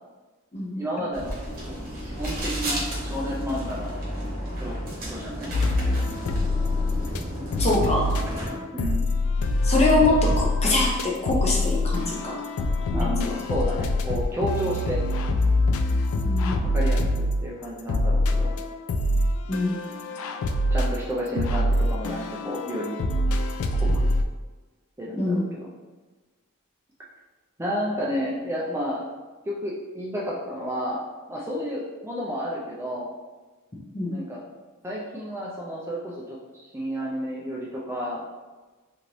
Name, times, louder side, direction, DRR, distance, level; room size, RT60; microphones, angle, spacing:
voice 1, 0.8-1.4 1.7-3.9 4.6-4.8 5.1-5.6 8.7-9.1 12.9-15.0 16.7-18.5 20.7-23.0 23.8-24.1 25.0-25.7 27.6-29.1 29.5-31.0 31.3-33.1 34.1-34.4 34.8-38.2, equal, 10° right, -4 dB, 0.3 m, -31 dB
sound 1, 1.1-8.5, equal, 45° right, 1.0 m, -32 dB
sound 2, 5.5-7.2 7.5-24.2, left 1 dB, 70° left, 0.3 m, -25 dB
voice 2, 7.6-8.1 9.6-12.4 12.9-13.3 16.2-16.6 19.5-19.8 25.1-25.5 33.9-34.1, left 2 dB, 30° left, -3 dB, 0.6 m, -24 dB
3.0 x 2.6 x 2.9 m, 1.2 s
head